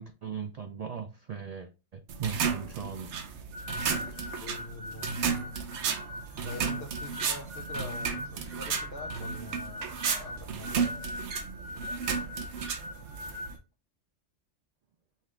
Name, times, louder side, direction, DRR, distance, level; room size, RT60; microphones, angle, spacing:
voice 1, 0.0-3.1, right 6 dB, 90° right, 0.3 m, -38 dB
sound 1, 2.1-13.6, right 6 dB, 70° right, 0.9 m, -33 dB
sound 2, 3.5-13.6, left 2 dB, 25° right, 0.9 m, -41 dB
voice 2, 4.4-5.1 6.4-10.8, left 2 dB, 55° left, 0.9 m, -45 dB
5.6 x 2.4 x 3.3 m
omnidirectional pair, 1.3 m